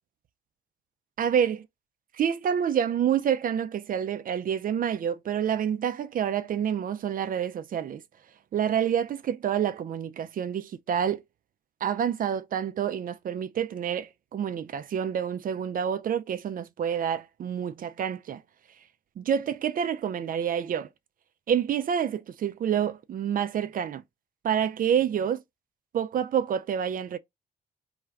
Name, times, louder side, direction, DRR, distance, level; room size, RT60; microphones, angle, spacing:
voice 1, 1.2-1.7 2.1-8.0 8.5-11.2 11.8-18.4 19.2-20.9 21.5-24.0 24.4-25.4 25.9-27.2, right 8 dB, 45° right, 0.4 m, -28 dB
2.3 x 2.1 x 3.2 m
hypercardioid pair, 45°, 20 cm